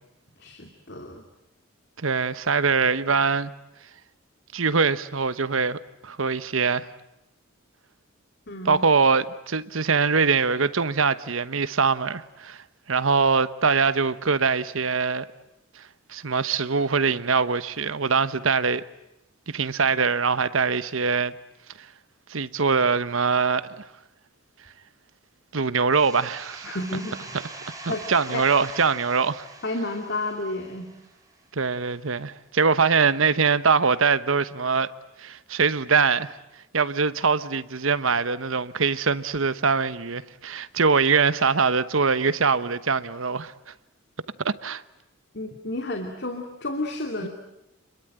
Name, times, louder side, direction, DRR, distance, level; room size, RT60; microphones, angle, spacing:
voice 1, 0.4-1.3 8.5-8.8 26.6-27.4 27.9-28.4 29.6-30.9 45.3-47.3, left 2 dB, 55° left, 2.6 m, -31 dB
voice 2, 2.0-3.5 4.5-6.9 8.6-12.6 12.9-15.3 16.1-18.8 19.5-21.3 22.3-23.8 25.5-26.8 27.8-29.4 31.5-34.9 35.2-36.4 36.7-43.5 44.4-44.8 47.2-47.3, right 5 dB, 75° right, 1.1 m, -23 dB
sound 1, 25.9-31.4, right 3 dB, 15° right, 3.8 m, -42 dB
29.5 x 22.5 x 9.2 m
head